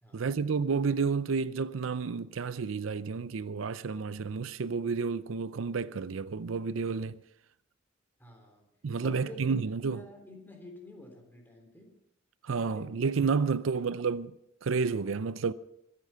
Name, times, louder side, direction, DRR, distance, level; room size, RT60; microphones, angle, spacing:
voice 1, 0.1-7.2 8.8-10.0 12.4-14.4 14.6-15.5, right 5 dB, 85° right, 0.5 m, -30 dB
voice 2, 8.2-8.7 9.0-9.4 9.8-11.9 12.6-13.0 13.4-13.8, left 1 dB, 10° left, 3.4 m, -49 dB
23.5 x 8.4 x 5.7 m
head